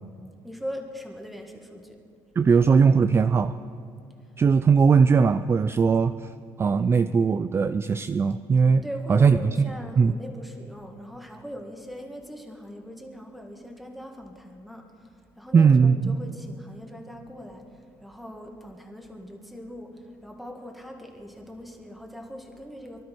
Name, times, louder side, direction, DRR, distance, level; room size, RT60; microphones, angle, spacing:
voice 1, 0.4-2.0 8.8-15.1 15.4-23.0, equal, ahead, 2 dB, 1.9 m, -40 dB
voice 2, 2.4-3.6 4.4-6.1 6.6-8.8 9.1-9.7 10.0-10.1 15.5-16.2, right 5 dB, 25° right, 11 dB, 0.4 m, -19 dB
23.5 x 12.5 x 4.7 m, 2.3 s
cardioid pair, 115°, 9 cm